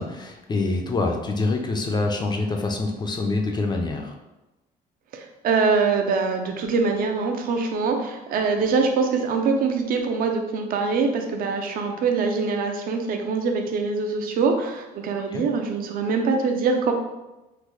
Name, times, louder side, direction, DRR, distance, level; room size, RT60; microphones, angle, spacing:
voice 1, 0.0-4.2 15.3-15.5, left 3 dB, 25° left, 2 dB, 0.4 m, -26 dB
voice 2, 5.1-16.9, right 4 dB, 60° right, 4 dB, 0.6 m, -23 dB
3.8 x 2.2 x 3.0 m, 1.0 s
cardioid pair, 110°, 17 cm